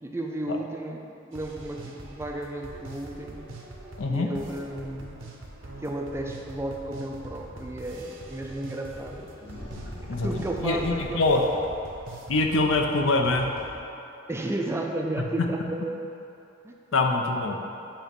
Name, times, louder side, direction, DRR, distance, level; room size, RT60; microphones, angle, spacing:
voice 1, 0.0-3.4 4.1-5.2 5.8-9.3 10.2-11.7 14.3-16.0 16.6-16.7, right 1 dB, 15° right, 1 dB, 0.4 m, -33 dB
sound 1, 1.3-13.8, right 2 dB, 75° right, 0.9 m, -44 dB
sound 2, 9.4-11.6, left 1 dB, 30° left, 0.7 m, -41 dB
voice 2, 10.1-11.4 12.3-13.5 16.9-17.6, left 2 dB, 70° left, 2 dB, 0.6 m, -24 dB
8.8 x 3.0 x 5.2 m, 2.9 s
head